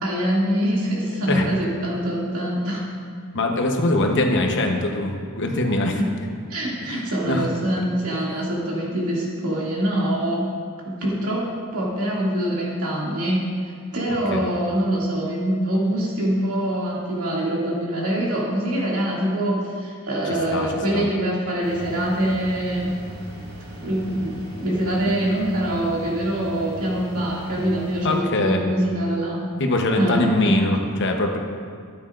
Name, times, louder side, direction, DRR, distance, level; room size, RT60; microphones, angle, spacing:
voice 1, 0.0-2.8 5.9-6.1 6.5-10.5 10.9-13.4 13.9-22.9 23.8-29.5 29.9-30.6, right 1 dB, 75° right, -5 dB, 2.4 m, -24 dB
voice 2, 3.3-6.0 6.8-7.0 7.3-7.5 14.3-14.4 20.5-21.1 28.0-28.6 29.6-31.4, left 2 dB, 55° left, 3 dB, 1.0 m, -22 dB
sound 1, 21.6-28.2, right 1 dB, 50° right, 1.9 m, -39 dB
12.5 x 9.8 x 2.5 m, 2.1 s
head